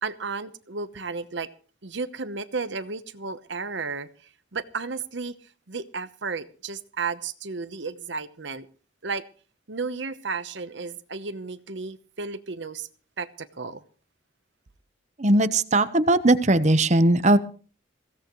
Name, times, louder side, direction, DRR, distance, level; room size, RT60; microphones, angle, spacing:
voice 1, 0.0-1.5 1.8-4.1 4.5-5.3 5.7-8.7 9.0-9.2 9.7-12.9 13.2-13.8, right 4 dB, 65° right, 12 dB, 1.0 m, -33 dB
voice 2, 15.2-17.4, right 1 dB, 35° right, 12 dB, 0.9 m, -19 dB
22.0 x 16.5 x 3.1 m, 0.40 s
head